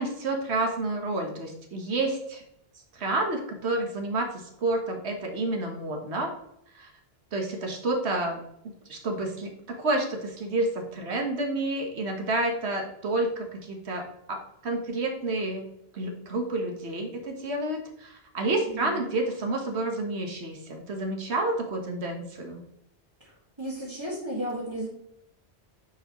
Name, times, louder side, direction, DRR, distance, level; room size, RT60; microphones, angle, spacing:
voice 1, 0.0-2.4 2.9-4.3 4.6-6.3 6.7-6.9 7.3-8.4 8.9-9.5 9.8-15.6 15.9-22.6, right 2 dB, 80° right, 3 dB, 1.5 m, -29 dB
voice 2, 18.7-19.0 23.2-23.3 23.6-24.9, right 1 dB, 25° right, -9 dB, 1.9 m, -34 dB
9.8 x 4.8 x 3.0 m, 0.74 s
omnidirectional pair, 1.1 m